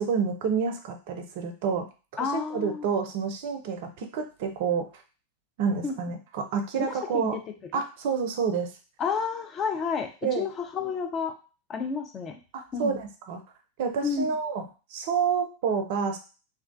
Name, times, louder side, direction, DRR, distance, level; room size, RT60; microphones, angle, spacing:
voice 1, 0.0-1.8 2.2-5.0 5.6-7.4 7.7-8.7 10.2-10.4 12.5-13.4 13.8-14.6 14.9-16.2, right 6 dB, 50° right, 6 dB, 0.4 m, -28 dB
voice 2, 2.2-2.9 5.8-5.9 6.8-7.4 7.7-7.8 9.0-11.3 11.7-12.4 12.7-13.0 14.0-14.3, left 5 dB, 25° left, 5 dB, 0.4 m, -30 dB
2.4 x 2.2 x 2.5 m, 0.34 s
figure-of-eight pair, 90°, 0 cm